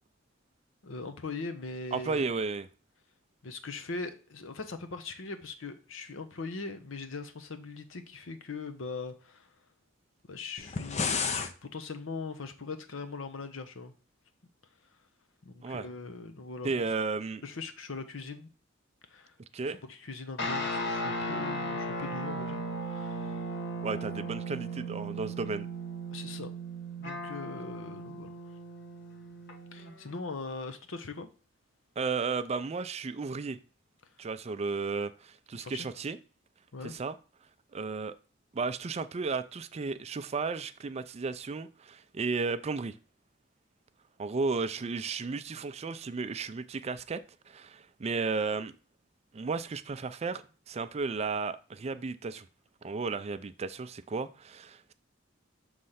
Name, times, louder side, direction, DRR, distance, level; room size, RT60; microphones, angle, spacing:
voice 1, 0.8-2.3 3.4-9.5 10.3-13.9 15.4-16.9 17.4-18.5 19.1-22.6 22.9-23.6 26.1-26.5 27.0-28.4 29.7-31.3 35.5-35.9 36.7-36.9, left 3 dB, 85° left, 0.8 m, -41 dB
voice 2, 1.9-2.7 15.6-15.9 16.6-17.4 19.5-19.8 23.8-25.7 32.0-33.6 34.2-36.2 36.8-37.1 37.7-38.1 38.5-42.9 44.2-47.2 47.5-48.8 49.3-52.5 52.8-54.9, right 4 dB, 35° right, 0.4 m, -34 dB
sound 1, 10.6-11.5, left 5 dB, 35° left, 0.6 m, -31 dB
sound 2, 20.4-30.1, right 1 dB, 60° left, 1.1 m, -36 dB
6.5 x 3.2 x 5.6 m
head